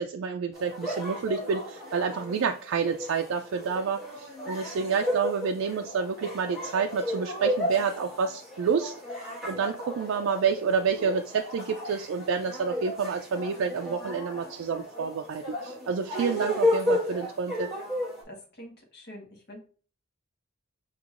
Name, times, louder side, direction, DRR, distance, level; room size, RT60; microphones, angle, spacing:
voice 1, 0.0-17.7, right 6 dB, 70° right, 5 dB, 0.3 m, -29 dB
sound 1, 0.5-18.2, left 1 dB, 5° right, 1.4 m, -33 dB
voice 2, 18.2-19.6, equal, 50° left, 0 dB, 1.3 m, -46 dB
6.4 x 2.9 x 2.4 m, 0.40 s
head